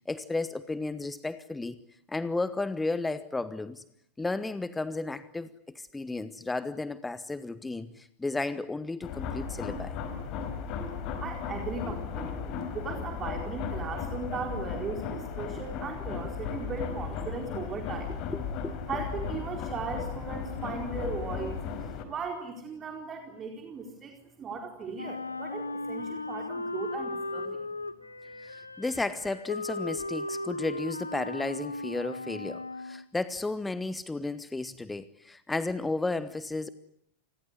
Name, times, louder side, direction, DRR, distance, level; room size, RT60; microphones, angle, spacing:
voice 1, 0.1-1.8 2.1-3.8 4.2-10.0 18.3-18.8 28.4-36.7, left 3 dB, 10° left, 15 dB, 1.2 m, -33 dB
sound 1, 9.0-22.0, left 6 dB, 40° left, 4.3 m, -36 dB
voice 2, 11.2-18.1 18.9-21.7 22.1-27.6, right 4 dB, 25° right, 3 dB, 4.3 m, -37 dB
Wind instrument woodwind instrument, 24.9-33.1, left 2 dB, 80° left, 1.2 m, -37 dB
29.0 x 21.0 x 9.7 m, 0.73 s
figure-of-eight pair, 90°, 0 cm